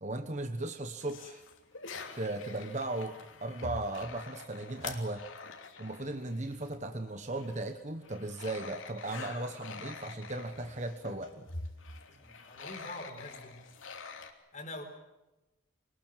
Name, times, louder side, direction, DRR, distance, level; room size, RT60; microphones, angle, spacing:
voice 1, 0.0-1.4 2.1-5.2 5.8-11.5, right 2 dB, 35° right, 7 dB, 1.2 m, -37 dB
sound 1, 1.0-6.9 7.3-14.3, left 4 dB, 70° left, 3.0 m, -46 dB
voice 2, 9.5-9.9 12.1-13.6 14.5-14.8, left 2 dB, 35° left, 5 dB, 4.2 m, -45 dB
25.5 x 20.0 x 7.5 m, 1.0 s
head